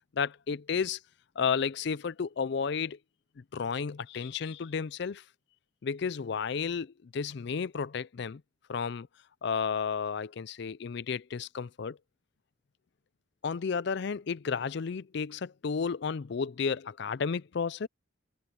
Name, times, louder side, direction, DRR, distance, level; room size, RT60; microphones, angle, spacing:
voice 1, 0.1-1.0 1.4-3.0 3.4-5.2 5.8-8.4 8.7-9.1 9.4-12.0 13.4-17.9, left 6 dB, 55° left, 0.4 m, -32 dB
head